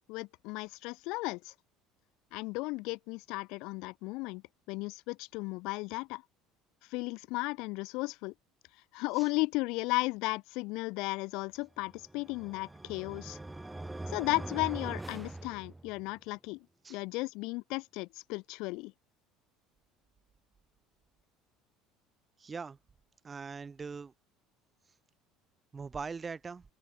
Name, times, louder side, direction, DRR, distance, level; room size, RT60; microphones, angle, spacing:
voice 1, 0.1-1.5 2.3-4.4 4.7-6.2 6.9-8.3 8.9-13.4 14.1-16.6 16.9-18.9, left 24 dB, 75° left, 0.6 m, -35 dB
sound 1, 11.9-16.2, right 2 dB, 10° right, 2.3 m, -43 dB
voice 2, 22.4-22.8 23.2-24.1 25.7-26.6, right 5 dB, 25° right, 3.5 m, -41 dB
open air
supercardioid pair, 105°, 0 cm